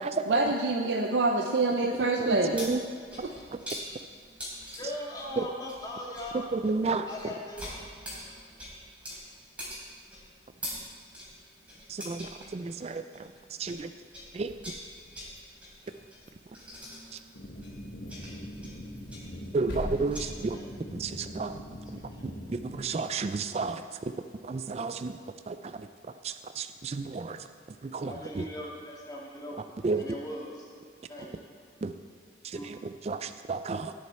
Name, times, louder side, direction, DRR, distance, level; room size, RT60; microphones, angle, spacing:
voice 1, 0.3-2.6 3.2-3.3, right 2 dB, 75° right, 2 dB, 0.7 m, -26 dB
voice 2, 2.2-2.8 5.4-5.5 6.5-7.0 11.9-13.3 13.6-13.9 14.3-14.5 19.5-20.6 20.9-21.6 22.2-23.8 24.4-25.2 25.5-25.9 26.2-27.4 27.8-28.4 29.8-30.0 31.8-31.9 32.4-33.9, right 4 dB, 35° right, 10 dB, 0.3 m, -32 dB
sound 1, 2.5-13.8 14.1-20.3, equal, 5° right, 3.2 m, -44 dB
voice 3, 4.8-6.5 7.1-7.7 8.3-8.4 20.5-20.7 21.9-22.2 23.8-23.9 25.1-25.2 28.0-29.6 29.9-30.7 31.1-31.5 32.5-32.7 33.2-33.3, left 1 dB, 20° left, -3 dB, 2.0 m, -40 dB
sound 2, 14.3-15.4 15.8-16.9 17.2-17.3 17.6-17.8 18.1-18.2 18.5-21.1, equal, 80° left, 3.3 m, -43 dB
sound 3, 17.3-22.8, equal, 65° left, 1.2 m, -43 dB
18.0 x 6.6 x 4.3 m, 2.2 s
head